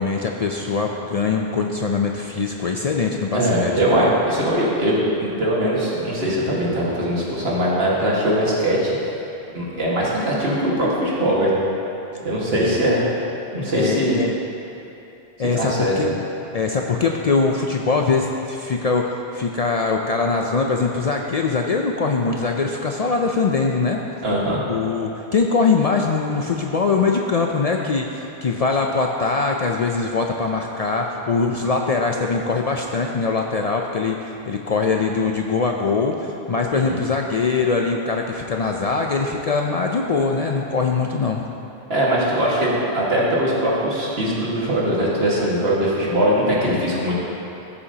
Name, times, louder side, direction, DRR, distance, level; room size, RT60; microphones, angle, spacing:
voice 1, 0.0-4.1 12.5-12.8 13.7-14.3 15.4-16.2 16.5-24.0 24.7-41.4, left 4 dB, 55° left, 1 dB, 0.4 m, -22 dB
voice 2, 3.3-9.0 9.5-11.5 12.2-13.0 13.5-14.2 15.5-16.0 24.2-24.6 36.7-37.0 41.9-47.2, right 1 dB, 75° right, -6 dB, 1.9 m, -21 dB
14.0 x 7.0 x 2.8 m, 2.9 s
omnidirectional pair, 1.0 m